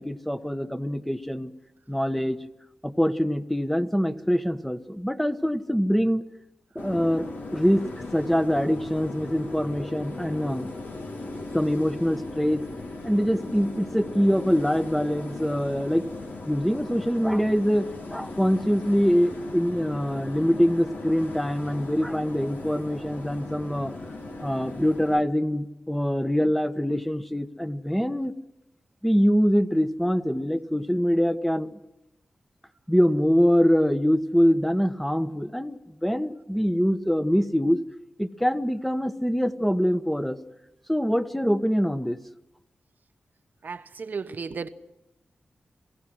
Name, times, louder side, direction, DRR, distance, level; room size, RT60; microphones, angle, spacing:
voice 1, 0.0-1.5 1.9-2.4 2.8-6.2 6.7-10.7 11.5-12.6 13.0-16.0 16.5-23.9 24.4-28.3 29.0-31.7 32.9-37.8 38.2-40.4 40.9-42.2, equal, 5° left, 9 dB, 1.3 m, -24 dB
sound 1, 6.8-25.2, left 2 dB, 70° left, 2.8 m, -38 dB
voice 2, 43.6-44.7, right 5 dB, 65° right, 11 dB, 1.0 m, -34 dB
27.5 x 16.5 x 6.3 m, 0.94 s
cardioid pair, 40°, 3 cm